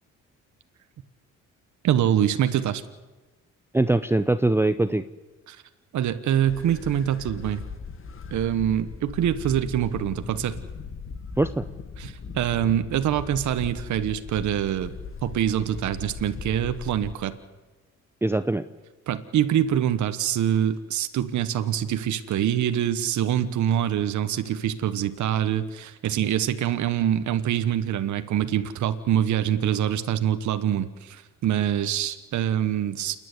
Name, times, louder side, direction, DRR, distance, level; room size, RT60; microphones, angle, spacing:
voice 1, 1.8-2.8 5.5-5.6 5.9-7.6 8.3-10.6 12.0-14.9 15.2-17.3 19.1-33.2, right 10 dB, 70° right, 10 dB, 1.3 m, -25 dB
voice 2, 3.7-5.0 11.4-11.6 18.2-18.6, right 2 dB, 10° right, 10 dB, 0.7 m, -22 dB
sound 1, 6.5-17.1, left 5 dB, 45° left, 1.8 m, -38 dB
28.5 x 10.5 x 9.6 m, 1.2 s
cardioid pair, 90°, 30 cm